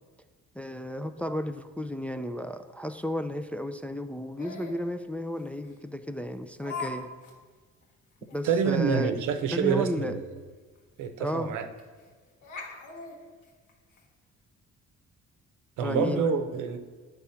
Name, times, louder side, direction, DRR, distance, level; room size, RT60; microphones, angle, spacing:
voice 1, 0.5-7.1 8.3-9.1 9.5-10.2 11.2-11.5 15.8-16.2, left 1 dB, 5° left, 8 dB, 0.3 m, -33 dB
Laughter, 4.4-4.8 5.6-5.7 6.6-6.9 7.2-7.3 7.8-7.9 8.3-8.4 10.4-10.5 10.8-10.9 11.8-12.1 12.4-14.0, left 4 dB, 80° left, 1.5 m, -39 dB
voice 2, 8.4-10.3 11.0-11.7 15.8-16.8, right 6 dB, 85° right, 8 dB, 0.7 m, -27 dB
8.4 x 3.5 x 5.7 m, 1.5 s
cardioid pair, 90°, 30 cm